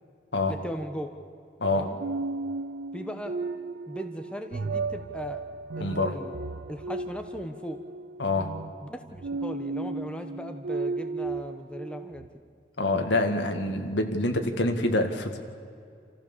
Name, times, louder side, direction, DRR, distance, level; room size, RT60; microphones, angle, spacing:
voice 1, 0.5-1.1 1.7-2.0 2.9-3.3 3.9-5.4 5.8-6.3 6.7-7.8 8.8-12.3, equal, 5° left, 5 dB, 1.1 m, -38 dB
sound 1, 2.0-12.3, right 3 dB, 85° right, 0.6 m, -35 dB
voice 2, 5.8-6.2 8.2-8.5 12.8-15.4, left 2 dB, 85° left, 5 dB, 2.1 m, -26 dB
28.0 x 15.0 x 7.4 m, 2.4 s
head